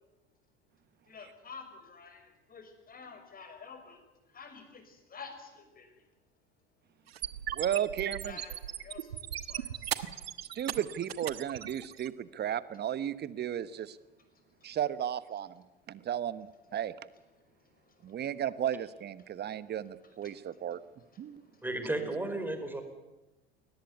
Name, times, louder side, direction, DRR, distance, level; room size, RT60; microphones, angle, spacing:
voice 1, 1.1-4.0 4.3-5.9 8.2-9.9 16.7-16.8 20.2-20.3 21.5-21.6, left 5 dB, 30° left, 7 dB, 5.8 m, -49 dB
sound 1, 7.1-12.1, right 10 dB, 75° right, 1.2 m, -37 dB
voice 2, 7.5-8.4 10.5-14.0 14.6-16.5 16.7-16.9 18.0-20.8 21.2-21.4, right 10 dB, 35° right, 17 dB, 1.2 m, -34 dB
voice 3, 21.6-22.8, right 2 dB, 5° right, 7 dB, 4.8 m, -33 dB
22.5 x 18.5 x 9.6 m, 1.1 s
figure-of-eight pair, 70°, 30 cm